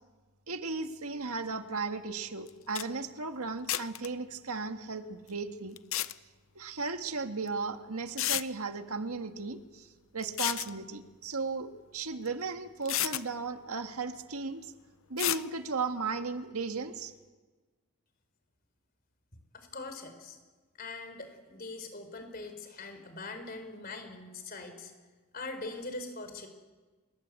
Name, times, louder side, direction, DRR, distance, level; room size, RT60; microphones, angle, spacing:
voice 1, 0.5-5.7 6.5-9.9 10.1-14.7 15.1-17.1, right 4 dB, 80° right, 7 dB, 1.7 m, -36 dB
sound 1, 2.5-2.6 2.8-2.9 3.7-4.1 5.8-6.1 7.5-7.6 8.2-8.5 10.2-10.7 12.3-12.4 12.9-13.2 15.2-15.4, left 13 dB, 65° left, 0.7 m, -31 dB
voice 2, 19.5-20.4 20.8-24.9 25.3-26.5, left 3 dB, 40° left, 8 dB, 4.2 m, -42 dB
29.0 x 20.0 x 8.4 m, 1.3 s
head